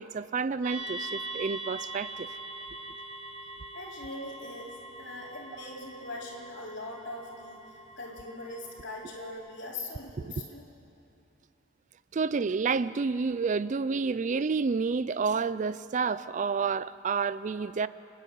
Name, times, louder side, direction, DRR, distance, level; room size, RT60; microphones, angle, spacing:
voice 1, 0.0-2.3 10.2-10.3 12.1-17.9, right 5 dB, 40° right, 0.4 m, -29 dB
sound 1, 0.6-9.3, right 2 dB, 75° right, 5.0 m, -42 dB
voice 2, 3.7-10.7, left 2 dB, 60° left, 3.9 m, -41 dB
30.0 x 10.5 x 9.3 m
head